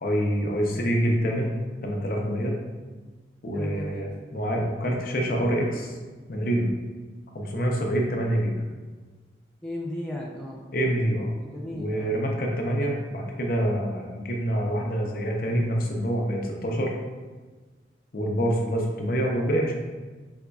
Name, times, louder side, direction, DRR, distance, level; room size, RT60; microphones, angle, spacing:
voice 1, 0.0-2.6 3.4-5.9 6.3-6.7 7.3-8.5 10.7-11.3 11.7-17.0 18.1-19.7, equal, 50° left, 0 dB, 0.6 m, -26 dB
voice 2, 3.5-4.0 9.6-10.6 11.4-12.2, left 1 dB, 5° left, -4 dB, 0.3 m, -35 dB
5.1 x 3.5 x 2.3 m, 1.3 s
head